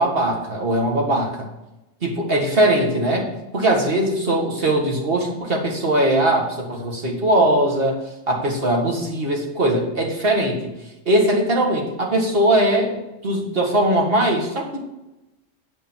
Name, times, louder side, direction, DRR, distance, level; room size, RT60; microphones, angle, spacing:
voice 1, 0.0-1.5 2.0-8.0 8.3-10.7 11.1-12.9 13.2-14.8, right 1 dB, 45° right, 0 dB, 2.0 m, -20 dB
9.0 x 5.4 x 7.2 m, 0.98 s
omnidirectional pair, 1.4 m